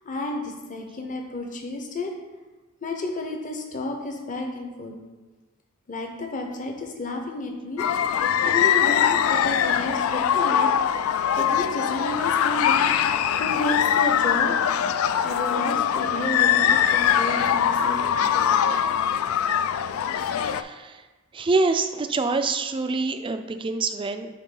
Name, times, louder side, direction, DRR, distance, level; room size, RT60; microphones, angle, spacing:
voice 1, 0.0-2.1 2.8-5.0 5.9-10.7 11.1-12.9 13.4-14.6 15.2-18.6, left 2 dB, 40° left, 2 dB, 0.8 m, -31 dB
sound 1, 7.8-20.6, left 9 dB, 75° left, 0.3 m, -22 dB
voice 2, 20.3-21.0 21.3-24.3, right 3 dB, 25° right, 8 dB, 0.3 m, -26 dB
9.1 x 3.6 x 3.8 m, 1.2 s
head